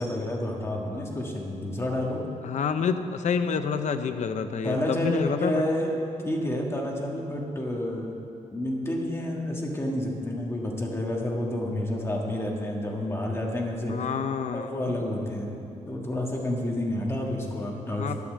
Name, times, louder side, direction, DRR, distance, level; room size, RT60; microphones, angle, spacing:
voice 1, 0.0-2.2 4.6-8.1 8.5-14.0 14.5-18.2, left 1 dB, 20° left, -1 dB, 1.5 m, -29 dB
voice 2, 2.4-5.6 13.9-14.7 17.9-18.2, left 6 dB, 65° left, 9 dB, 0.6 m, -28 dB
9.9 x 8.3 x 7.4 m, 2.7 s
wide cardioid pair, 160°, 13 cm